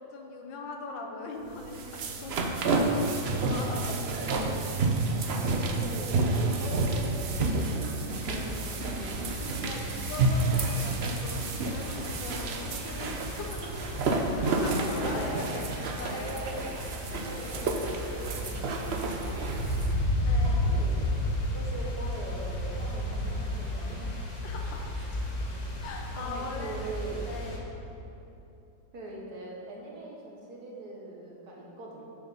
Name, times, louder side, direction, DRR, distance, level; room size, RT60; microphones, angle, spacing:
voice 1, 0.1-2.4 2.7-2.9 3.3-4.6 5.7-5.8 9.5-13.7 14.0-15.7 16.0-16.4 20.2-20.7 24.4-24.9 25.8-27.7, left 3 dB, 80° left, 2 dB, 1.5 m, -40 dB
sound 1, 1.5-19.9, right 3 dB, 75° right, 0.5 m, -30 dB
voice 2, 5.5-9.7 14.1-14.3 14.8-15.5 16.1-16.6 17.2-19.6 20.1-20.9 21.5-24.0 25.0-25.1 26.2-27.2 28.9-32.0, right 2 dB, 55° right, -3 dB, 1.8 m, -42 dB
sound 2, 8.1-27.6, left 1 dB, 25° left, 1.0 m, -34 dB
7.9 x 6.4 x 5.6 m, 2.9 s
omnidirectional pair, 2.0 m